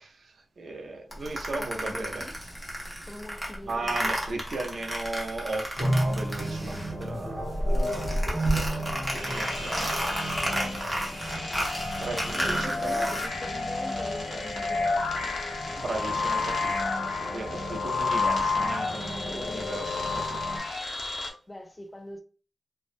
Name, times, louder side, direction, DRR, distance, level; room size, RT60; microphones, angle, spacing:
voice 1, 0.0-2.2 3.7-8.9 9.1-9.9 12.0-13.2 15.8-20.6, right 2 dB, 70° right, 0.4 m, -37 dB
sound 1, 1.1-7.1 7.4-13.3, equal, 5° right, 0.7 m, -32 dB
voice 2, 1.5-2.3 3.0-4.5 11.0-11.7 12.0-15.5 21.5-22.2, left 1 dB, 20° left, 0.3 m, -43 dB
sound 2, 5.7-20.6, right 1 dB, 50° left, 0.9 m, -35 dB
sound 3, 9.1-21.3, left 3 dB, 75° left, 0.6 m, -31 dB
2.4 x 2.1 x 2.4 m
wide cardioid pair, 120°, 0 cm